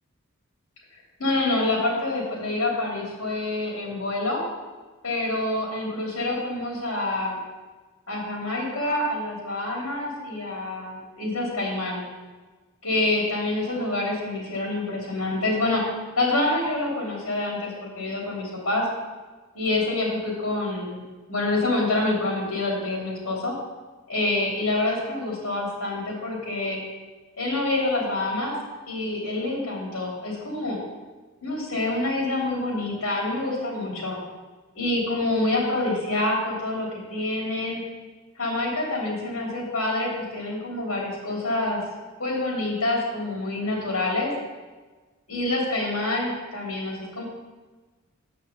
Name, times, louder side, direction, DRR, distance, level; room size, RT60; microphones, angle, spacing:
voice 1, 1.2-4.4 5.0-7.4 8.1-12.0 12.8-18.9 19.5-23.5 24.1-26.8 27.4-28.5 28.9-30.8 31.4-34.2 34.7-37.8 38.4-41.8 42.2-44.3 45.3-47.2, left 2 dB, 70° left, -3 dB, 3.1 m, -27 dB
7.7 x 5.7 x 6.8 m, 1.3 s
head